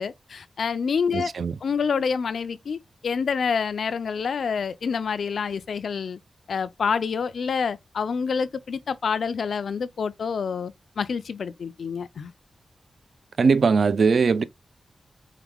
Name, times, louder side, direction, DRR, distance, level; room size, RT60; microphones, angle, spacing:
voice 1, 0.0-1.3 1.6-6.2 6.5-12.3, left 6 dB, 85° left, 0.5 m, -27 dB
voice 2, 1.1-1.5 13.4-14.4, right 5 dB, 65° right, 0.4 m, -20 dB
4.8 x 2.3 x 3.5 m
wide cardioid pair, 110°, 0 cm